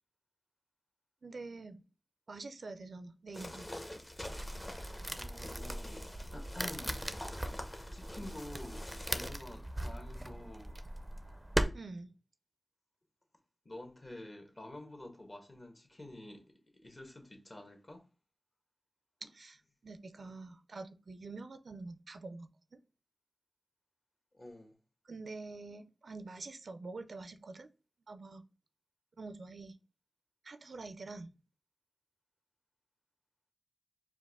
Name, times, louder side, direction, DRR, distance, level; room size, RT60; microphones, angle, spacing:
voice 1, 1.2-1.8 2.3-3.7 11.7-12.1 19.2-22.8 25.1-27.7 28.1-28.4 29.2-29.8 30.4-31.3, right 3 dB, 80° right, 0.4 m, -46 dB
sound 1, 3.3-9.3, left 1 dB, 25° left, 0.8 m, -46 dB
sound 2, 4.2-11.7, right 1 dB, 15° right, 0.4 m, -39 dB
voice 2, 5.1-7.1 7.9-10.8 13.6-18.0 20.2-20.3 24.3-24.7, left 1 dB, 45° left, 1.2 m, -49 dB
4.6 x 2.4 x 3.5 m
wide cardioid pair, 60°, 0 cm